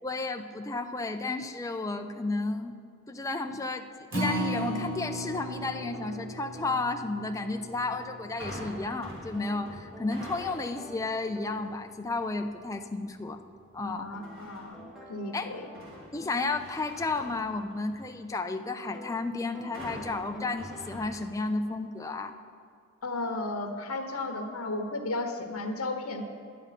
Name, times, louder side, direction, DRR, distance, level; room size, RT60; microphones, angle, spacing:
voice 1, 0.0-2.7 3.1-3.9 4.1-13.4 13.7-14.1 15.3-15.5 16.1-22.4, left 3 dB, 15° left, 6 dB, 0.4 m, -32 dB
Acoustic guitar, 4.1-10.4 10.8-10.9 11.3-11.4, right 1 dB, 60° right, 1.7 m, -37 dB
sound 1, 4.5-6.9 9.3-11.7 14.1-16.5 18.9-19.2 19.5-21.0, equal, ahead, 0.9 m, -48 dB
sound 2, 8.4-10.9 11.4-11.8 14.2-14.9 15.4-18.2 19.7-21.7 22.0-22.1, equal, 45° right, 2.6 m, -45 dB
voice 2, 13.8-15.7 23.0-26.2, left 2 dB, 80° left, 4 dB, 1.0 m, -34 dB
11.0 x 9.4 x 5.8 m, 2.3 s
head